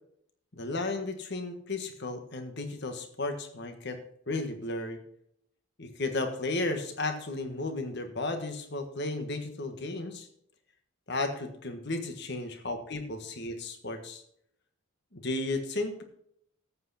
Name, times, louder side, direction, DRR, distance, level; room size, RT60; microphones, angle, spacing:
voice 1, 0.5-4.0 4.3-5.0 5.8-10.3 11.1-14.2 15.1-16.0, left 2 dB, 55° left, 7 dB, 1.5 m, -34 dB
13.5 x 8.4 x 4.2 m, 0.69 s
head